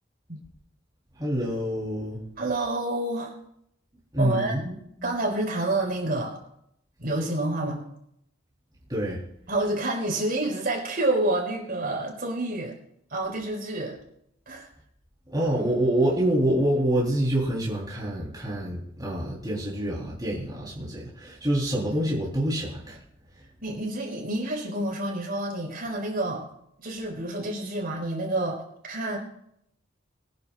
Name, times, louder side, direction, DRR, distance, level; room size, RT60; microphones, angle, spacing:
voice 1, 1.2-2.2 4.1-5.1 8.9-9.2 15.3-23.0, right 1 dB, 20° right, -6 dB, 3.7 m, -26 dB
voice 2, 2.4-3.3 4.2-4.5 5.0-6.4 7.0-7.9 9.5-12.7 13.1-14.0 14.5-14.7 23.6-26.4 26.8-29.2, right 2 dB, 50° right, -1 dB, 4.9 m, -28 dB
25.0 x 10.5 x 2.5 m, 0.74 s
head